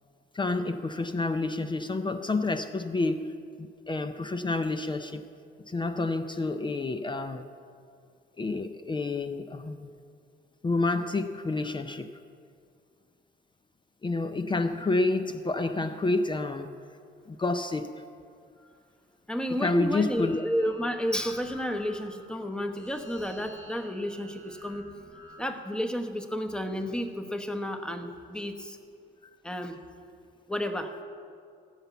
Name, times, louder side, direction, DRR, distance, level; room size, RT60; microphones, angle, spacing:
voice 1, 0.3-5.3 5.7-7.4 8.4-9.9 10.6-12.1 14.0-16.7 17.3-18.0 19.6-20.4, left 3 dB, 25° left, 0.6 m, -29 dB
voice 2, 19.3-24.9 25.4-28.8 29.4-29.8 30.5-31.0, equal, 5° left, 1.0 m, -31 dB
sound 1, 20.0-25.6, left 1 dB, 70° left, 3.5 m, -51 dB
15.5 x 5.7 x 8.3 m
cardioid pair, 90°, 20 cm